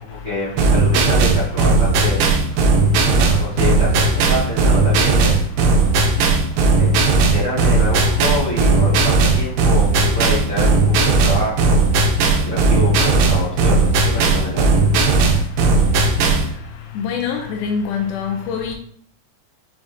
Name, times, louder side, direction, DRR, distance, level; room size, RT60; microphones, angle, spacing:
voice 1, 0.0-2.2 3.2-5.4 6.7-11.8 12.3-14.7, left 1 dB, 60° right, -10 dB, 0.3 m, -26 dB
sound 1, 0.6-16.5, right 3 dB, 85° right, 2.3 m, -16 dB
voice 2, 17.0-18.7, left 6 dB, 80° left, 2 dB, 1.9 m, -24 dB
6.9 x 2.7 x 2.6 m, 0.62 s
omnidirectional pair, 3.9 m